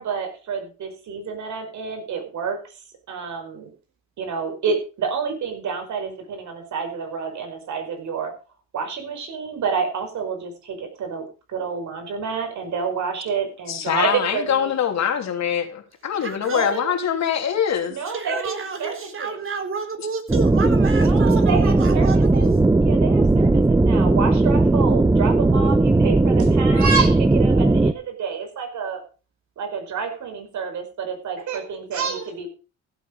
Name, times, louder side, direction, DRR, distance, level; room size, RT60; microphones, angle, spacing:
voice 1, 0.0-2.6 3.1-3.7 4.2-8.3 8.7-14.7 16.5-16.9 17.9-19.4 20.9-22.5 22.8-29.0 29.6-32.5, right 5 dB, 70° right, 5 dB, 5.1 m, -29 dB
voice 2, 13.7-18.0, left 8 dB, 65° left, 4 dB, 3.2 m, -23 dB
voice 3, 16.2-16.8 17.8-22.5, right 5 dB, 45° right, 7 dB, 3.8 m, -31 dB
sound 1, 20.3-27.9, right 2 dB, 10° right, 0.7 m, -17 dB
15.5 x 8.3 x 5.2 m, 0.35 s
cardioid pair, 90°, 30 cm